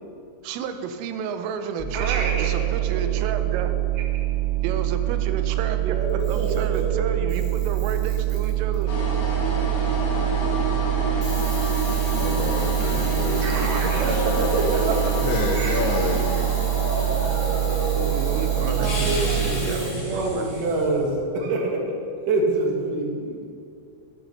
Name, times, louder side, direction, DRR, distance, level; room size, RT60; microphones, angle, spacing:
voice 1, 0.4-3.8 4.6-8.9 17.9-20.5, right 6 dB, 80° right, 8 dB, 3.3 m, -31 dB
sound 1, 1.8-19.5, right 16 dB, 10° right, 0.3 m, -25 dB
voice 2, 1.9-2.5 3.1-3.2 5.8-7.2 13.4-15.3 15.6-16.0 16.7-16.8 18.8-21.9 22.3-23.4, right 2 dB, 60° right, 0 dB, 2.4 m, -26 dB
Camera, 6.1-6.9 7.3-8.8 11.2-19.9, right 1 dB, 30° right, 2.8 m, -38 dB
sound 2, 8.9-21.1, equal, 60° left, 0.8 m, -29 dB
voice 3, 12.2-14.4 15.2-16.5, left 4 dB, 90° left, 1 dB, 2.2 m, -29 dB
11.5 x 9.0 x 6.7 m, 2.5 s
omnidirectional pair, 5.9 m